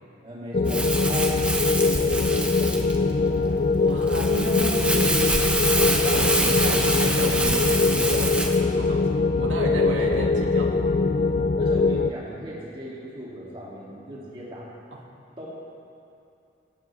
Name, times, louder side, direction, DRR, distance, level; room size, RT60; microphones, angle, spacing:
voice 1, 0.2-3.7 9.9-10.2 11.6-14.7 15.4-15.5, equal, 30° right, -6 dB, 3.1 m, -38 dB
sound 1, 0.5-12.1, left 3 dB, 40° left, 0.3 m, -22 dB
Crumpling crinkling, 0.7-8.6, right 1 dB, 5° right, 1.0 m, -26 dB
voice 2, 3.7-5.2 5.7-10.9, right 1 dB, 90° right, -1 dB, 2.4 m, -32 dB
20.0 x 17.0 x 3.7 m, 2.7 s
head